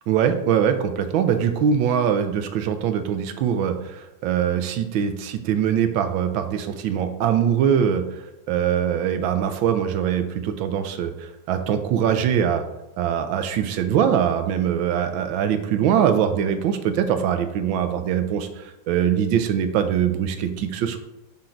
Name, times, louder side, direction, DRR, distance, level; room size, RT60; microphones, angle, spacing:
voice 1, 0.1-12.6 13.0-21.0, right 8 dB, 90° right, 8 dB, 1.4 m, -22 dB
7.4 x 3.9 x 4.4 m, 0.94 s
omnidirectional pair, 2.1 m